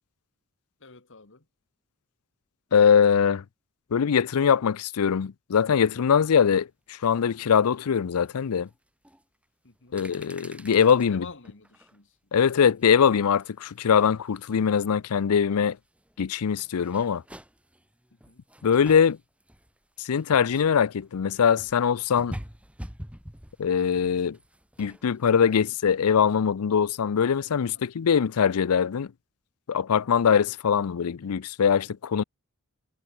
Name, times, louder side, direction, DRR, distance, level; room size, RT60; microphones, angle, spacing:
voice 1, 0.8-1.5 9.6-10.0 11.1-12.5 18.1-18.4 25.6-25.7 27.7-27.9, left 4 dB, 60° left, 2.0 m, -49 dB
voice 2, 2.7-3.4 3.9-8.7 9.9-11.3 12.3-15.8 16.2-17.2 18.6-19.2 20.0-22.4 23.6-24.4 24.8-29.1 29.7-32.2, left 7 dB, 85° left, 0.5 m, -22 dB
sound 1, 6.2-6.4 7.3-7.4 7.8-8.0 8.7-8.8 9.0-9.2 9.7-11.1 11.4-12.0 12.4-14.9 15.1-25.6, equal, 5° right, 4.1 m, -46 dB
head